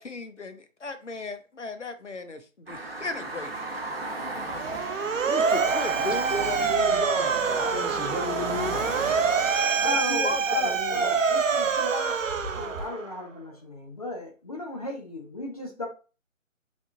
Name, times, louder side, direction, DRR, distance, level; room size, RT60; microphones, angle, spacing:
voice 1, 0.0-3.6 5.3-6.4 9.6-11.2, left 3 dB, 60° left, 0.8 m, -36 dB
sound 1, 2.7-12.9, right 2 dB, 45° right, 0.9 m, -37 dB
Motor vehicle (road) / Siren, 4.6-13.2, right 5 dB, 70° right, 0.6 m, -26 dB
voice 2, 6.3-8.9, left 1 dB, 20° right, 1.2 m, -33 dB
voice 3, 9.8-12.2 12.5-15.9, left 2 dB, 30° left, 0.8 m, -35 dB
3.9 x 3.5 x 2.4 m
figure-of-eight pair, 155°, 40 cm